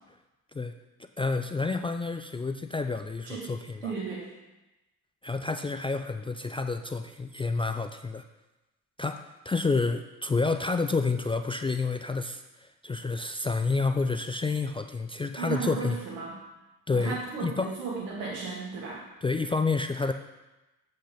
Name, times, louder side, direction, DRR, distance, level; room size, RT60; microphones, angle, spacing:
voice 1, 1.2-3.9 5.2-8.2 9.0-16.0 16.9-17.7 19.2-20.1, left 3 dB, 15° left, 7 dB, 0.3 m, -29 dB
voice 2, 3.8-4.3 15.4-16.4 16.9-19.0, right 5 dB, 80° right, -4 dB, 2.2 m, -35 dB
7.5 x 5.6 x 5.2 m, 1.0 s
figure-of-eight pair, 45°, 44 cm